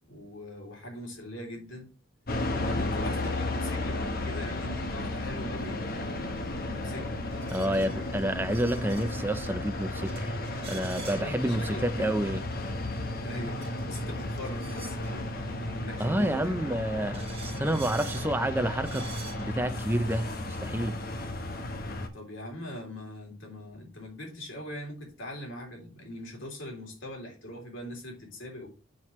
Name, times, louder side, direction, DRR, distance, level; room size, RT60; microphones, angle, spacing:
voice 1, 0.0-1.9 2.5-8.1 11.2-12.2 13.2-16.6 22.1-28.7, left 1 dB, 60° left, 3.3 m, -41 dB
sound 1, 2.3-22.1, left 2 dB, 45° left, 1.0 m, -34 dB
sound 2, 7.3-9.2 9.6-9.7 10.0-11.4 12.7-15.1 16.6-16.7 17.1-18.4 18.8-19.5, right 7 dB, 25° right, 1.2 m, -47 dB
voice 2, 7.5-10.3 10.7-12.4 16.0-19.1 19.4-20.3 20.6-21.0, right 1 dB, 10° right, 0.5 m, -29 dB
7.4 x 6.2 x 3.1 m
head